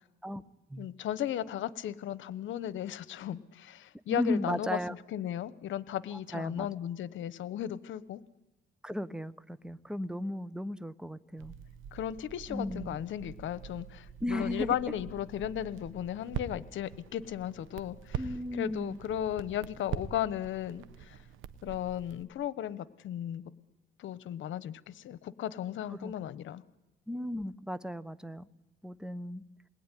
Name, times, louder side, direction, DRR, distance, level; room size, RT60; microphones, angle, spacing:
voice 1, 0.8-4.8 5.1-8.2 11.9-21.2 21.6-23.4 24.0-26.6, left 11 dB, 75° left, 17 dB, 1.1 m, -35 dB
voice 2, 4.1-4.9 6.1-6.7 8.8-11.5 12.5-13.0 14.2-14.7 18.2-19.0 25.9-26.3 27.1-28.5 28.8-29.4, left 1 dB, 5° right, 15 dB, 1.1 m, -35 dB
Crackle, 11.4-22.2, right 8 dB, 85° right, 1.3 m, -44 dB
28.0 x 20.5 x 10.0 m, 1.0 s
cardioid pair, 90°, 20 cm